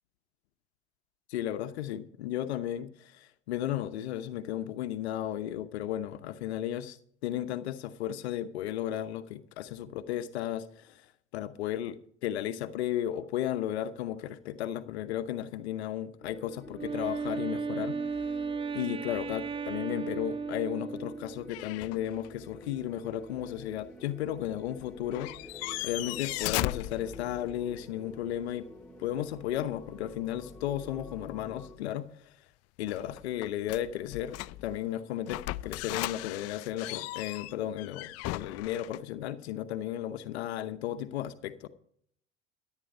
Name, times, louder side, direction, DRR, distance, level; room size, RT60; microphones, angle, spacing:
voice 1, 1.3-7.0 7.2-11.1 11.3-18.0 18.7-25.3 25.6-28.7 29.0-32.3 32.8-41.7, left 12 dB, 85° left, 0.8 m, -34 dB
sound 1, 16.2-31.8, equal, 5° left, 1.8 m, -49 dB
Wind instrument woodwind instrument, 16.7-21.5, right 5 dB, 15° right, 0.9 m, -35 dB
sound 2, 21.5-22.3 22.6-22.7 24.8-24.9 25.1-27.7 32.9-34.8 35.3-39.0, left 19 dB, 50° left, 0.5 m, -37 dB
14.5 x 9.0 x 5.4 m
hypercardioid pair, 85°, 32 cm